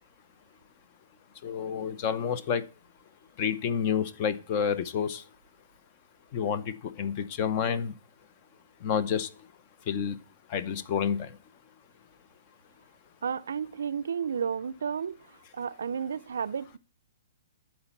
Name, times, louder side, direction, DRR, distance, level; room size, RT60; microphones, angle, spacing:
voice 1, 1.4-2.6 3.4-5.2 6.3-7.9 8.8-9.3 9.9-10.2 10.5-11.3, left 7 dB, 30° left, 0.7 m, -29 dB
voice 2, 13.2-15.2 15.5-16.8, right 7 dB, 80° right, 0.4 m, -32 dB
11.0 x 4.4 x 7.1 m
hypercardioid pair, 160°, 0 cm